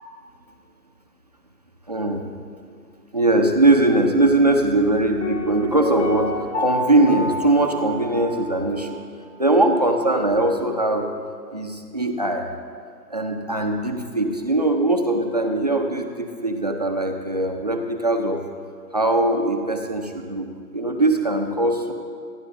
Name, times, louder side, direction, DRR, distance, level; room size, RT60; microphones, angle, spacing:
voice 1, 1.9-2.3 3.1-9.0 9.4-11.1 11.5-12.5 13.1-18.4 18.9-20.5 20.7-21.9, right 2 dB, 25° right, 3 dB, 0.6 m, -21 dB
Piano, 5.2-9.0 9.2-9.3, left 1 dB, 45° left, 2.7 m, -29 dB
27.0 x 10.5 x 2.7 m, 2.2 s
figure-of-eight pair, 145°, 50 cm